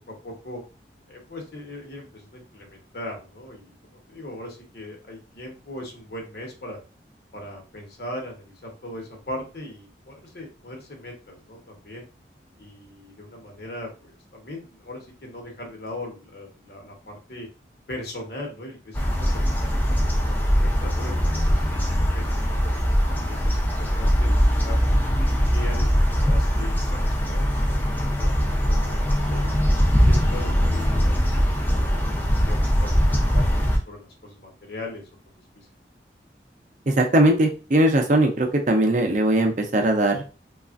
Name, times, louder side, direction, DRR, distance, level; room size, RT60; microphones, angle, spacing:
voice 1, 0.1-0.6 1.1-6.8 7.3-12.1 12.6-17.5 17.9-21.6 22.1-24.8 25.3-29.6 30.0-32.0 32.4-35.1 35.6-35.7, left 1 dB, 65° left, 1 dB, 1.0 m, -39 dB
sound 1, 18.9-33.8, equal, 10° left, 0.4 m, -21 dB
voice 2, 36.9-40.2, right 1 dB, 45° right, 4 dB, 0.5 m, -20 dB
3.2 x 2.4 x 2.4 m, 0.34 s
head